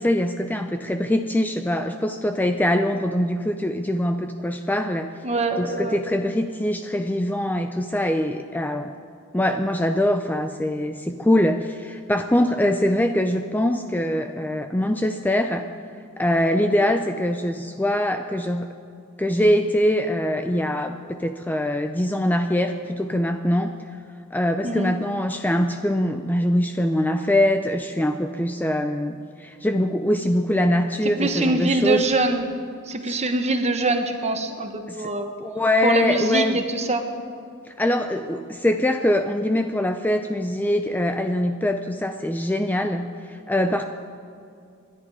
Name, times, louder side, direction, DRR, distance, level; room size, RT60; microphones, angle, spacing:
voice 1, 0.0-5.1 5.6-8.9 9.3-15.7 16.2-18.7 19.2-23.7 24.3-32.1 33.1-33.2 34.9-35.1 35.4-36.6 37.7-43.8, left 1 dB, 10° left, 6 dB, 0.4 m, -23 dB
voice 2, 5.2-6.0 24.6-24.9 31.0-32.5 32.8-35.3 35.8-37.0, right 2 dB, 30° right, 6 dB, 1.3 m, -24 dB
27.0 x 11.0 x 4.9 m, 2.4 s
head